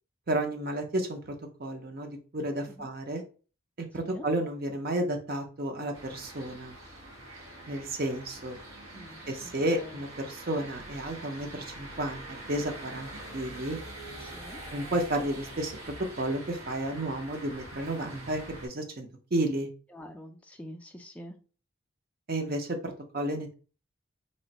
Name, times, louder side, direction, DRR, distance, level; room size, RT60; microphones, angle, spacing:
voice 1, 0.3-3.2 3.8-6.8 7.7-8.6 9.3-12.2 12.5-13.8 14.7-19.7 22.3-23.5, right 1 dB, 45° right, 5 dB, 0.7 m, -32 dB
sound 1, 5.9-18.7, right 1 dB, 85° right, 1.4 m, -44 dB
voice 2, 8.9-9.3 9.7-10.0 14.2-14.6 19.9-21.4, equal, 5° left, 4 dB, 0.3 m, -46 dB
3.1 x 2.5 x 4.1 m, 0.37 s
head